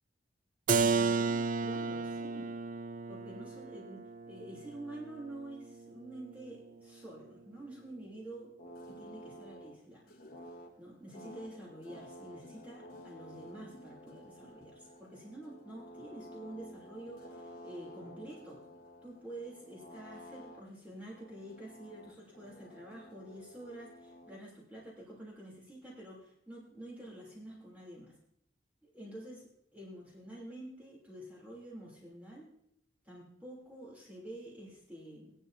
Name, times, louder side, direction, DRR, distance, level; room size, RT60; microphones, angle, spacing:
Keyboard (musical), 0.7-6.3, right 4 dB, 45° right, 0.4 m, -33 dB
voice 1, 0.8-2.5 3.1-4.0 4.3-8.5 8.9-10.1 10.8-18.6 19.0-28.2 28.8-32.5 33.0-35.3, right 1 dB, 10° right, -5 dB, 3.0 m, -48 dB
sound 1, 8.6-24.4, equal, 50° left, 1.2 m, -52 dB
18.0 x 11.0 x 2.7 m, 0.72 s
head